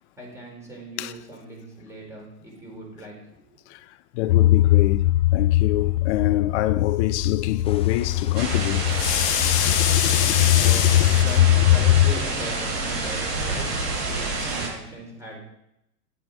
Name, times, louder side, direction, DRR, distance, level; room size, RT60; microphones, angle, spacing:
voice 1, 0.2-3.2 10.6-13.7 14.0-15.4, right 1 dB, 5° right, 4.0 m, -39 dB
voice 2, 3.7-11.7 14.4-14.5, left 16 dB, 45° left, 0.6 m, -26 dB
sound 1, 4.3-12.3, left 14 dB, 80° left, 0.7 m, -20 dB
sound 2, 7.6-13.9, left 5 dB, 10° left, 0.7 m, -43 dB
sound 3, 8.3-14.7, right 3 dB, 80° right, 4.6 m, -28 dB
9.7 x 7.8 x 5.0 m
hypercardioid pair, 120°, 49 cm